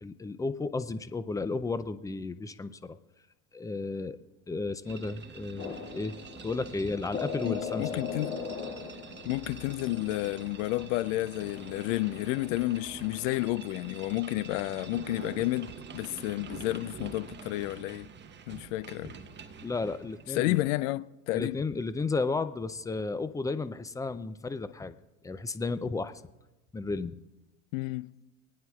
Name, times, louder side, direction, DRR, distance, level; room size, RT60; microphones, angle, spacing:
voice 1, 0.0-3.0 3.5-4.2 4.5-6.2 6.4-8.0 19.6-20.6 21.3-24.9 25.2-26.1 26.7-27.2, left 3 dB, 10° left, 0.4 m, -33 dB
sound 1, 4.8-20.7, right 6 dB, 25° right, 1.1 m, -46 dB
sound 2, 5.6-13.5, left 5 dB, 35° left, 2.3 m, -41 dB
voice 2, 7.4-8.4 9.2-18.1 18.5-19.1 20.3-21.6 27.7-28.1, left 18 dB, 65° left, 0.6 m, -31 dB
28.0 x 9.5 x 2.4 m
hypercardioid pair, 90°, 42 cm